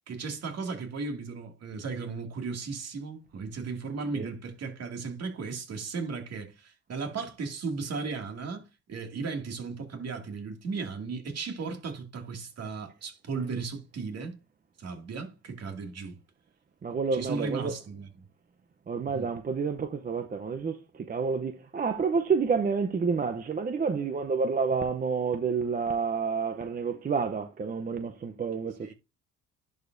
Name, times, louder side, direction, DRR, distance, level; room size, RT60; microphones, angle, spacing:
voice 1, 0.1-14.4 14.8-16.2 17.1-18.1 19.1-19.3 28.8-28.9, right 4 dB, 55° right, 2.3 m, -36 dB
voice 2, 16.8-17.7 18.9-28.9, right 5 dB, 30° right, 0.7 m, -29 dB
11.0 x 4.8 x 2.6 m
cardioid pair, 95°, 31 cm